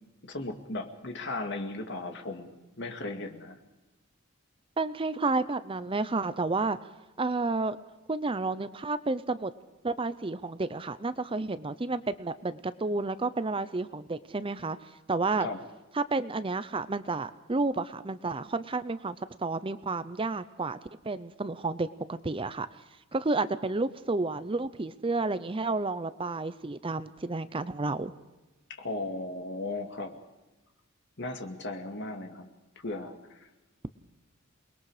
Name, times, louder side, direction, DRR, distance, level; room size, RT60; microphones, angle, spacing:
voice 1, 0.2-3.6 15.4-15.6 28.7-30.1 31.2-32.5 32.8-33.5, left 2 dB, 60° left, 5 dB, 2.2 m, -36 dB
voice 2, 4.8-6.8 7.2-7.8 8.1-9.5 9.8-14.8 15.1-15.5 16.0-20.8 21.0-22.7 23.1-28.1, right 3 dB, 25° right, 14 dB, 0.6 m, -31 dB
28.5 x 21.0 x 4.9 m, 1.1 s
head